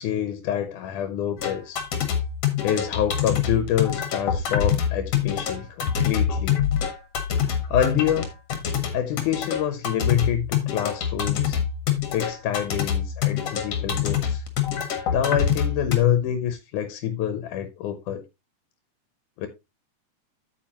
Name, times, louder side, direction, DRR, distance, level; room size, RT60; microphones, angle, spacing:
voice 1, 0.0-1.8 2.6-6.6 7.3-8.3 8.9-11.6 12.1-14.4 15.1-18.2 19.4-19.5, left 10 dB, 85° left, 2.4 m, -26 dB
sound 1, 1.4-16.0, left 8 dB, 60° left, 2.4 m, -25 dB
8.7 x 7.9 x 2.9 m
omnidirectional pair, 3.5 m